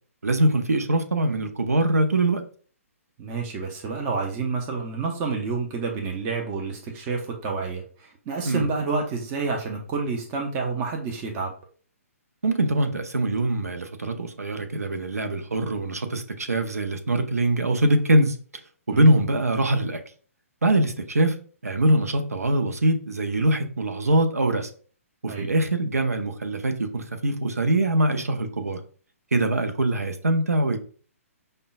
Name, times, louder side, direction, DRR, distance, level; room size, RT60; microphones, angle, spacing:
voice 1, 0.2-2.4 8.5-8.7 12.4-18.4 18.9-20.0 20.6-21.4 21.6-24.7 25.2-28.8 29.3-30.8, right 1 dB, 85° right, 7 dB, 0.5 m, -23 dB
voice 2, 3.2-11.5 18.9-19.2 25.3-25.5, right 4 dB, 25° right, 1 dB, 0.6 m, -29 dB
5.1 x 2.2 x 2.4 m, 0.43 s
figure-of-eight pair, 130°, 8 cm